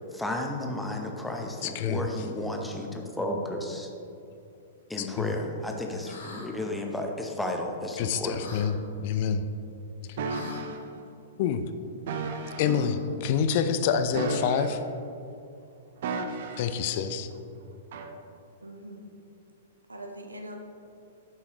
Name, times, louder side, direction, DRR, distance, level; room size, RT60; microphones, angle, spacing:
voice 1, 0.1-3.9 4.9-8.5, left 1 dB, 5° left, 1 dB, 0.8 m, -33 dB
voice 2, 1.6-2.1 5.0-5.3 8.0-9.4 10.1-10.4 11.4-11.6 12.6-14.8 16.6-17.3, left 7 dB, 45° left, 9 dB, 0.4 m, -27 dB
sound 1, 6.0-6.5 8.4-8.7 10.3-10.6 12.6-13.1, left 2 dB, 65° left, 1.4 m, -40 dB
sound 2, 10.2-10.8 12.1-12.7 14.1-15.0 16.0-16.8 17.9-18.1, right 4 dB, 50° right, 0.5 m, -33 dB
voice 3, 16.5-17.2 18.6-19.0 19.9-20.6, right 1 dB, 80° right, 3 dB, 0.8 m, -43 dB
9.7 x 5.7 x 2.9 m, 2.6 s
figure-of-eight pair, 105°, 0 cm